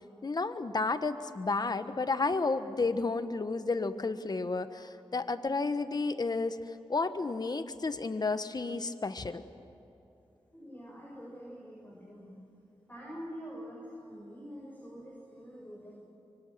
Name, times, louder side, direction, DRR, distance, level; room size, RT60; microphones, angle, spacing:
voice 1, 0.2-9.4, left 3 dB, 45° left, 10 dB, 1.3 m, -32 dB
voice 2, 10.5-12.4 12.9-16.0, equal, 20° left, -3 dB, 6.9 m, -46 dB
25.5 x 24.5 x 7.7 m, 2.9 s
cardioid pair, 60°, 10 cm